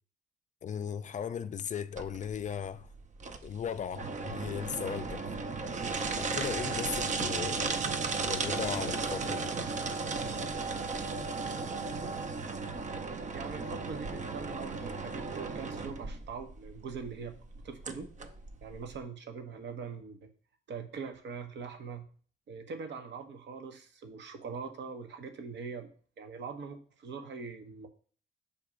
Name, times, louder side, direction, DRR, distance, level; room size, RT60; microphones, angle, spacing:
voice 1, 0.6-2.9 3.4-5.2 6.2-7.8 8.2-9.5, left 8 dB, 40° left, 0.4 m, -37 dB
sound 1, 2.0-19.0, right 4 dB, 40° right, 0.6 m, -35 dB
voice 2, 13.3-17.3 17.6-18.1 18.6-20.3 20.7-22.1 22.5-25.9 26.2-27.9, right 5 dB, 65° right, 0.9 m, -42 dB
6.9 x 2.9 x 4.9 m
cardioid pair, 90°, 20 cm